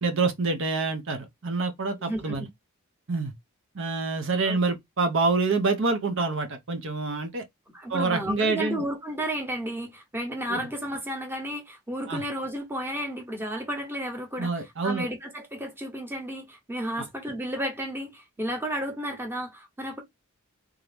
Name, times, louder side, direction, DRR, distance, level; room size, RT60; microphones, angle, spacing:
voice 1, 0.0-2.5 3.1-3.3 3.7-7.4 7.9-8.9 10.5-10.7 12.1-12.2 14.4-15.1 17.0-17.1, right 3 dB, 60° right, 0.8 m, -27 dB
voice 2, 2.0-2.5 4.4-4.6 7.7-20.0, equal, 10° right, 1.0 m, -33 dB
3.6 x 2.7 x 3.4 m
head